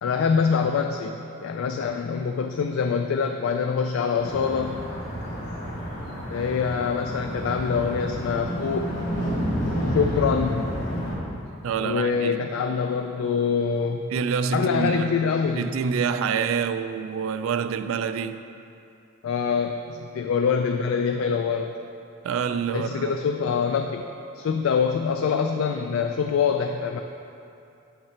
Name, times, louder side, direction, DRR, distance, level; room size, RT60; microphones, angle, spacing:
voice 1, 0.0-4.8 6.3-8.9 9.8-10.7 11.8-14.1 14.5-15.7 19.2-21.7 22.7-24.0 24.3-27.0, left 6 dB, 85° left, 0.3 m, -25 dB
sound 1, 4.2-11.2, equal, 60° left, 1.7 m, -30 dB
voice 2, 11.6-12.4 14.1-15.1 15.6-18.4 22.2-23.1, right 6 dB, 80° right, 0.3 m, -27 dB
6.7 x 5.8 x 4.4 m
head